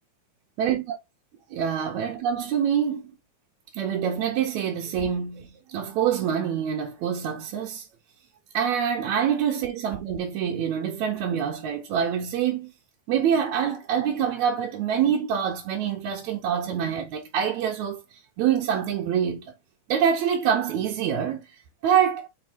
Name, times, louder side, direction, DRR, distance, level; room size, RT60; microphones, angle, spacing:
voice 1, 0.6-1.0 1.5-3.1 3.7-7.9 8.5-12.7 13.1-19.5 19.9-22.3, right 8 dB, 75° right, 2.2 m, -26 dB
5.5 x 4.6 x 4.3 m
omnidirectional pair, 3.4 m